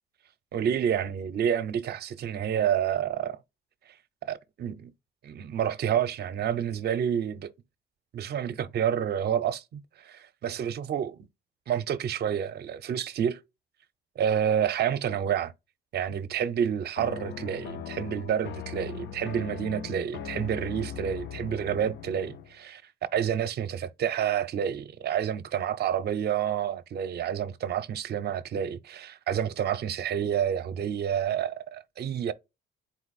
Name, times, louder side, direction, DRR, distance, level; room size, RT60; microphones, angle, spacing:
voice 1, 0.5-3.4 4.2-4.9 5.2-7.5 8.1-11.2 11.7-13.4 14.2-15.5 15.9-22.8 23.1-32.3, right 9 dB, 55° right, 0.6 m, -29 dB
sound 1, 17.0-22.5, left 9 dB, 65° left, 0.5 m, -39 dB
4.1 x 2.5 x 4.0 m
cardioid pair, 90°, 20 cm